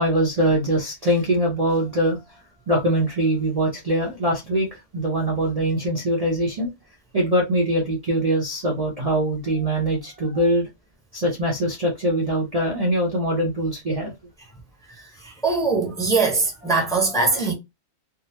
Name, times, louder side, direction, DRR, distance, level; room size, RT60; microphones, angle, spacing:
voice 1, 0.0-2.2 2.7-4.7 4.9-6.7 7.1-10.7 11.1-14.1 16.6-17.2, right 1 dB, 35° right, 0.7 m, -23 dB
voice 2, 15.4-17.5, right 4 dB, 5° left, 0.8 m, -21 dB
3.7 x 2.0 x 2.8 m
omnidirectional pair, 1.4 m